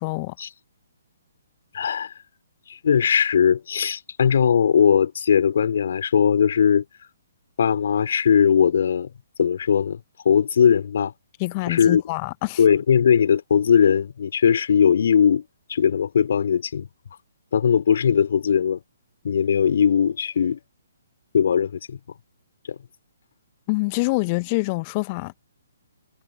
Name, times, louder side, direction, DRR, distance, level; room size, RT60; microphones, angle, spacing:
voice 1, 0.0-0.3 11.4-12.6 23.7-25.3, left 27 dB, 25° left, 1.5 m, -25 dB
voice 2, 1.7-2.1 2.7-6.9 7.6-9.1 9.4-11.1 11.7-12.0 12.6-15.4 15.7-16.9 17.5-18.8 19.2-20.6 21.3-22.0 22.7-22.8, left 7 dB, 50° left, 4.2 m, -19 dB
figure-of-eight pair, 130°, 0 cm